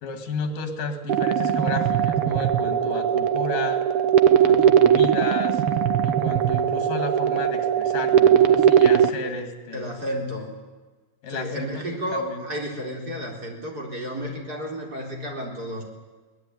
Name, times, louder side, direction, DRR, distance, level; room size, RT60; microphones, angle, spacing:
voice 1, 0.0-3.8 4.3-5.6 6.0-9.8 11.2-11.9 12.1-12.4, left 4 dB, 85° left, 7 dB, 3.9 m, -33 dB
sound 1, 1.1-9.1, right 9 dB, 65° right, 1.4 m, -19 dB
voice 2, 9.7-10.5 11.3-15.8, equal, 30° right, 1 dB, 4.3 m, -32 dB
22.5 x 19.5 x 9.5 m, 1.3 s
omnidirectional pair, 3.7 m